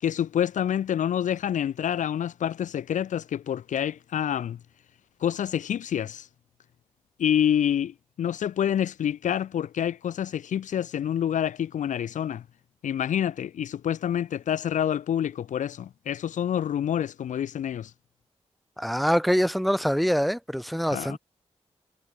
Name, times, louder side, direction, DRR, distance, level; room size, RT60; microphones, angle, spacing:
voice 1, 0.0-4.6 5.2-6.3 7.2-12.4 12.8-17.9 20.9-21.2, left 9 dB, 80° left, 0.5 m, -27 dB
voice 2, 18.8-21.2, equal, ahead, 3.1 m, -24 dB
cardioid pair, 50°, 13 cm